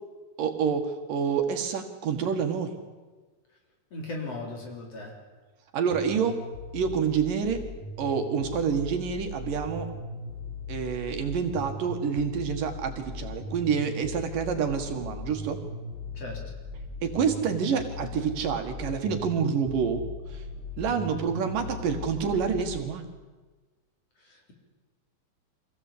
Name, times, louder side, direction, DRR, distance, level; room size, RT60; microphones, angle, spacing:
voice 1, 0.4-2.8 5.7-6.4 6.7-7.6 8.0-9.9 10.7-15.6 17.0-20.4 20.8-23.1, right 6 dB, 65° right, 5 dB, 3.2 m, -28 dB
voice 2, 3.9-5.2 16.1-16.6 24.2-24.5, left 2 dB, 45° left, 1 dB, 4.6 m, -38 dB
sound 1, 5.9-22.8, left 3 dB, 85° left, 5.2 m, -39 dB
25.0 x 17.0 x 8.6 m, 1.3 s
omnidirectional pair, 4.2 m